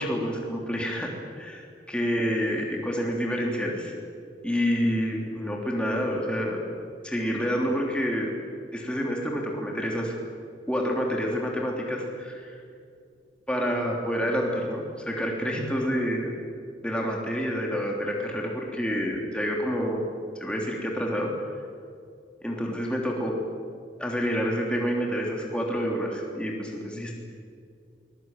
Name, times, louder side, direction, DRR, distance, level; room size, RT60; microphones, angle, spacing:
voice 1, 0.0-3.9 4.4-6.6 7.0-8.3 8.7-10.2 10.7-12.6 13.5-16.3 16.8-20.0 20.4-21.3 22.4-23.3 24.0-27.1, equal, 5° left, -1 dB, 3.3 m, -28 dB
23.5 x 21.0 x 9.2 m, 2.3 s
head